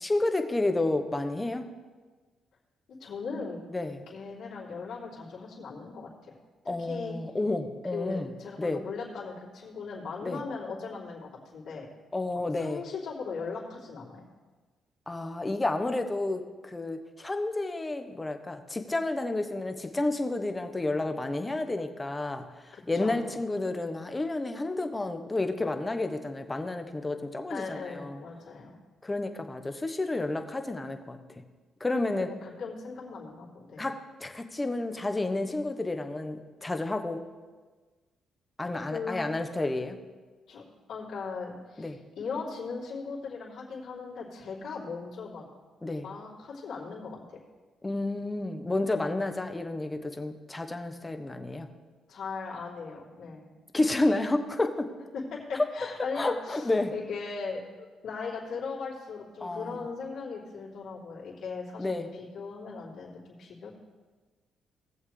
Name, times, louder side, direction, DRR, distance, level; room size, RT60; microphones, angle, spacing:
voice 1, 0.0-1.7 3.7-4.0 6.7-8.3 8.6-8.8 10.2-10.4 12.1-12.8 15.1-28.2 29.0-31.2 31.8-32.3 33.8-37.2 38.6-40.0 41.8-42.0 45.8-46.1 47.8-51.7 53.7-54.9 56.1-56.9 59.4-59.8 61.8-62.1, left 2 dB, 20° left, 6 dB, 1.0 m, -30 dB
voice 2, 2.9-3.6 4.1-6.1 6.6-7.2 7.9-11.9 12.5-14.3 22.7-23.3 27.5-28.7 31.9-33.8 38.7-39.3 40.5-45.4 46.0-47.2 52.1-53.5 55.1-63.7, left 4 dB, 70° left, -6 dB, 3.2 m, -38 dB
19.5 x 7.3 x 3.3 m, 1.4 s
cardioid pair, 90°, 0 cm